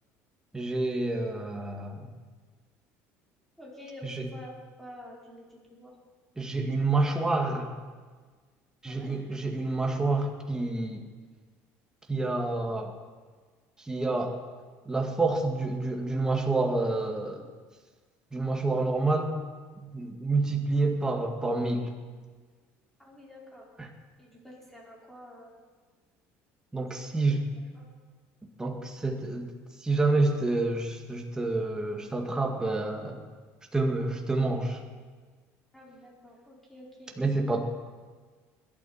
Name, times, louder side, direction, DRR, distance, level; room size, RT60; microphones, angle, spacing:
voice 1, 0.5-2.1 4.0-4.2 6.4-7.7 8.8-11.1 12.1-12.9 13.8-14.3 14.9-17.5 18.3-19.3 19.8-21.9 23.8-23.9 26.7-27.4 28.6-29.5 29.8-33.2 33.7-34.8 37.2-37.7, right 3 dB, 10° right, 2 dB, 2.2 m, -28 dB
voice 2, 3.6-4.5 4.8-5.9 8.8-9.3 23.0-23.7 24.2-25.5 27.2-27.8 35.7-37.1, left 1 dB, 5° left, -4 dB, 5.1 m, -48 dB
21.0 x 12.5 x 4.4 m, 1.5 s
cardioid pair, 120°, 6 cm